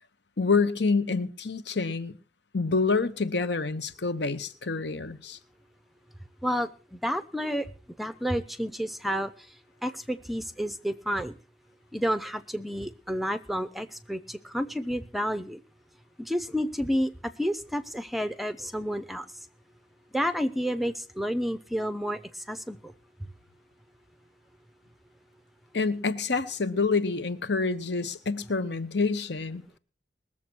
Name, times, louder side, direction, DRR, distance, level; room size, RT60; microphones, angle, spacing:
voice 1, 0.4-2.1 2.5-5.4 25.7-29.6, left 4 dB, 65° left, 1.0 m, -27 dB
voice 2, 6.4-7.7 8.0-9.3 9.8-11.3 11.9-15.6 16.2-19.3 20.1-22.9, equal, ahead, 0.6 m, -30 dB
20.0 x 7.3 x 6.1 m
head